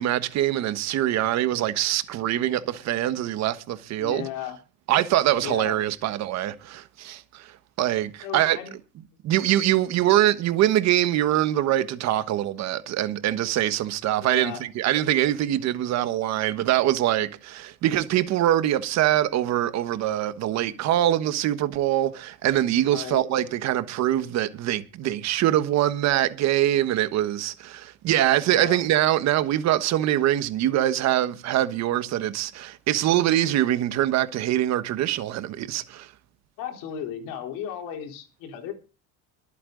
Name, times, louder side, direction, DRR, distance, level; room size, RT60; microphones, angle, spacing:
voice 1, 0.0-4.3 4.9-8.6 9.2-36.1, right 13 dB, 55° right, 1.3 m, -24 dB
voice 2, 4.0-4.6 5.4-5.8 8.2-8.7 14.2-14.7 22.9-23.2 28.5-28.8 36.6-38.7, left 9 dB, 85° left, 3.9 m, -35 dB
23.5 x 8.8 x 4.0 m
cardioid pair, 160°, 32 cm